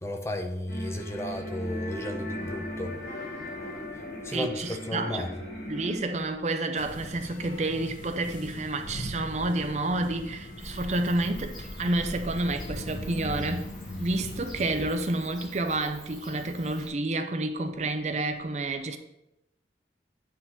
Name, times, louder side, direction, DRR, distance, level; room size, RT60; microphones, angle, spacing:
voice 1, 0.0-2.9 4.2-5.4, left 1 dB, 15° left, 0.7 m, -34 dB
sound 1, 0.7-6.0, left 1 dB, 70° left, 3.0 m, -37 dB
voice 2, 4.3-5.3 5.7-13.7 14.0-19.0, right 2 dB, 40° right, 0.6 m, -29 dB
sound 2, 6.8-14.9, left 1 dB, 45° left, 1.0 m, -40 dB
Bird / Cricket, 10.6-16.9, equal, ahead, 1.9 m, -44 dB
9.3 x 3.9 x 5.8 m
head